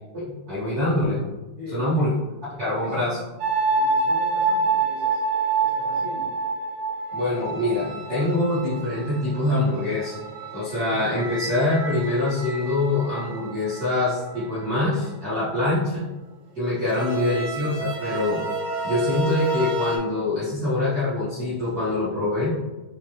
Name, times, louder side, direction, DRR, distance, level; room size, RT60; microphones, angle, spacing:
voice 1, 0.1-1.2 1.7-2.1 2.6-3.2 7.1-10.2 10.5-16.0 16.5-18.4 18.8-22.5, left 2 dB, 50° right, -11 dB, 1.2 m, -24 dB
voice 2, 1.6-2.1 2.6-3.3 3.7-5.2 5.6-6.3, left 2 dB, 55° left, -9 dB, 0.9 m, -40 dB
sound 1, 3.4-15.1 16.9-20.0, right 3 dB, 80° right, 2.1 m, -28 dB
7.2 x 2.6 x 2.8 m, 1.1 s
omnidirectional pair, 3.4 m